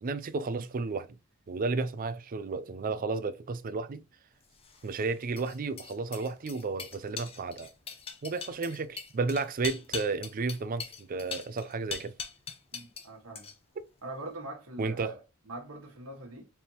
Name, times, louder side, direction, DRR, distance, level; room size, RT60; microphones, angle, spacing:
voice 1, 0.0-1.1 1.5-4.0 4.8-7.7 8.2-12.1 14.8-15.2, right 4 dB, 40° right, 0.4 m, -32 dB
sound 1, 4.5-13.1 13.4-13.8, left 6 dB, 25° left, 0.7 m, -41 dB
voice 2, 12.7-13.5 14.0-15.2 15.5-16.4, right 2 dB, 70° right, 1.5 m, -42 dB
4.3 x 3.5 x 2.9 m
head